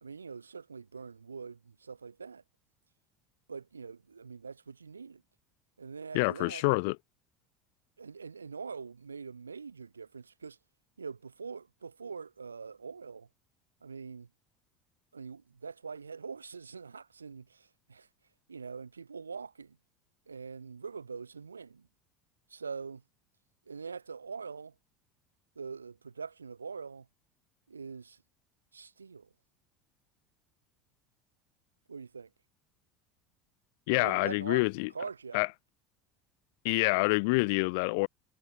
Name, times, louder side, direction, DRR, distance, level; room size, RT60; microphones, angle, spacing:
voice 1, 0.0-2.4 3.5-5.2 5.8-6.6 8.0-10.6 11.0-13.3 13.8-14.3 15.1-18.1 18.5-19.8 20.3-21.9 22.5-23.0 23.7-24.8 25.6-27.1 27.7-28.2 28.7-29.3 31.9-32.3 34.0-34.6 34.9-35.4, right 5 dB, 80° right, 2.0 m, -43 dB
voice 2, 6.1-6.9 33.9-34.9 35.3-35.5 36.6-38.1, left 30 dB, 60° left, 1.3 m, -27 dB
figure-of-eight pair, 70°, 0 cm